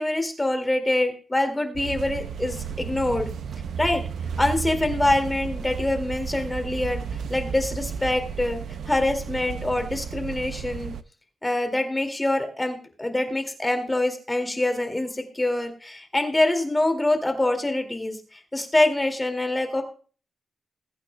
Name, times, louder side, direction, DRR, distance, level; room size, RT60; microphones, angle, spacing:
voice 1, 0.0-3.3 3.8-4.0 4.4-7.0 7.3-8.6 8.9-10.9 11.4-19.8, left 1 dB, 15° left, 5 dB, 2.2 m, -25 dB
sound 1, 1.8-11.0, right 6 dB, 85° right, 0.6 m, -33 dB
20.5 x 8.8 x 2.2 m, 0.39 s
wide cardioid pair, 140°, 0 cm